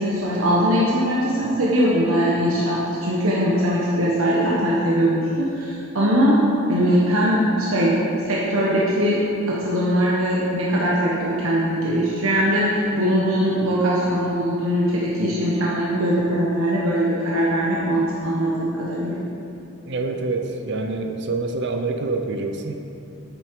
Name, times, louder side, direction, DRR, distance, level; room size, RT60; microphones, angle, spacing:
voice 1, 0.0-7.9 8.2-9.2 9.5-19.2, equal, 80° right, -5 dB, 1.2 m, -21 dB
voice 2, 19.9-22.7, right 3 dB, 55° right, 4 dB, 0.7 m, -26 dB
8.5 x 7.0 x 4.7 m, 2.6 s
head